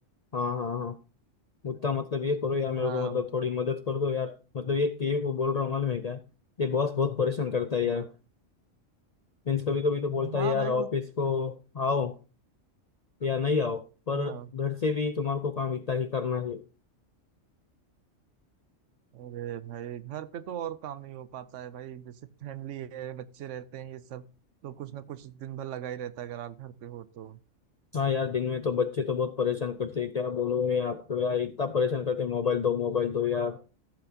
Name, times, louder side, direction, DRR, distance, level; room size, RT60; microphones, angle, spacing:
voice 1, 0.3-1.0 1.6-6.2 6.6-8.1 9.5-12.1 13.2-16.6 27.9-33.6, left 5 dB, 55° left, 10 dB, 0.4 m, -28 dB
voice 2, 2.7-3.2 7.8-8.1 10.2-10.9 14.1-14.5 19.1-24.2 24.6-27.4, right 10 dB, 75° right, 15 dB, 1.0 m, -39 dB
14.5 x 7.8 x 2.8 m, 0.33 s
omnidirectional pair, 1.3 m